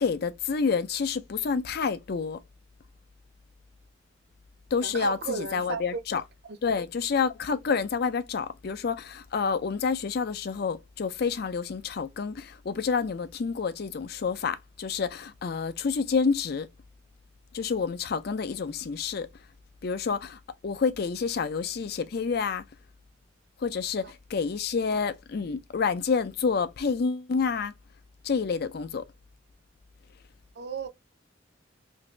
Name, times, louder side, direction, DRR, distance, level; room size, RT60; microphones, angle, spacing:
voice 1, 0.0-2.4 4.7-6.2 6.6-16.7 17.5-19.3 19.8-22.6 23.6-27.7 28.2-29.1, left 5 dB, 50° left, 0.4 m, -28 dB
voice 2, 4.8-6.0 6.5-6.6 24.9-25.0 30.6-30.9, right 4 dB, 55° right, 0.5 m, -33 dB
2.9 x 2.6 x 3.1 m
head